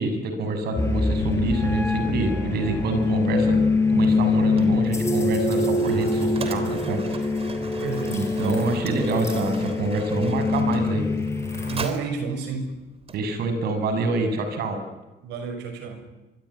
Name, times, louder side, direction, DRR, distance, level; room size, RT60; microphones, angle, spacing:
voice 1, 0.0-3.6 3.9-7.0 8.1-11.0 13.1-14.8, right 3 dB, 70° right, 8 dB, 6.6 m, -26 dB
sound 1, 0.8-11.8, left 3 dB, 15° left, 5.1 m, -24 dB
Mechanisms, 4.0-13.7, right 4 dB, 35° right, 3.5 m, -40 dB
voice 2, 7.8-8.2 11.7-12.8 15.2-16.0, right 4 dB, 90° right, 8 dB, 6.1 m, -30 dB
25.0 x 24.0 x 9.8 m, 1.1 s
cardioid pair, 110°, 17 cm